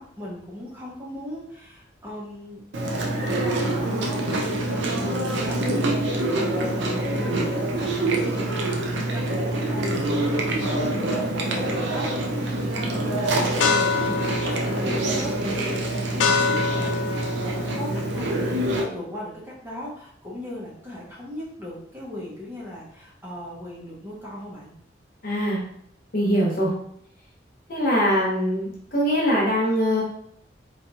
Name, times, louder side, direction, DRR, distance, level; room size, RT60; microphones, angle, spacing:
voice 1, 0.0-2.6 3.1-14.1 14.4-17.4 17.7-24.7, left 1 dB, 10° right, -6 dB, 0.6 m, -37 dB
Chewing mastication, 2.7-18.8, right 2 dB, 75° right, 0.5 m, -26 dB
sound 1, 9.5-18.8, left 5 dB, 75° left, 0.3 m, -29 dB
voice 2, 25.2-25.6 26.1-26.7 27.7-30.0, equal, 50° left, -4 dB, 0.9 m, -22 dB
2.8 x 2.3 x 2.7 m, 0.70 s
head